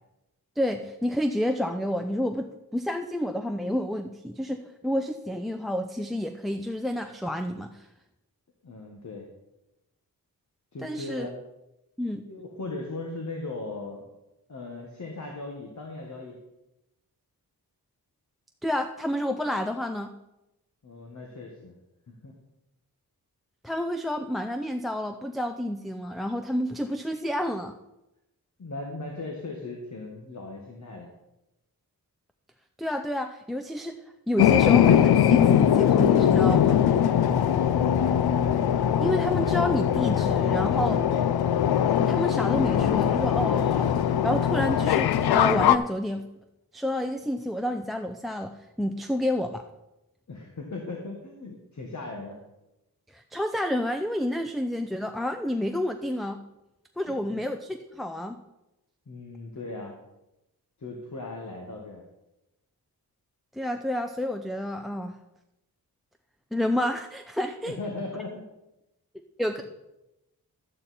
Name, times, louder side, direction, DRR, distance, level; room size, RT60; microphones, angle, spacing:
voice 1, 0.6-7.9 10.8-11.3 12.0-12.2 18.6-20.1 23.6-27.7 32.8-34.0 34.3-36.8 39.0-41.0 42.1-46.2 46.7-48.5 48.8-49.6 53.1-56.4 57.0-58.4 63.5-65.2 66.5-67.8 69.4-69.6, left 1 dB, ahead, 7 dB, 0.5 m, -29 dB
voice 2, 8.6-9.3 10.7-11.3 12.2-14.0 14.5-16.4 20.8-21.8 22.1-22.3 28.6-31.1 50.3-52.4 57.1-57.5 59.1-60.0 60.8-62.0 67.6-68.4, left 2 dB, 50° left, 0 dB, 1.6 m, -38 dB
sound 1, 34.4-45.8, left 9 dB, 90° left, 0.5 m, -21 dB
11.5 x 8.8 x 4.2 m, 0.94 s
wide cardioid pair, 90°, 37 cm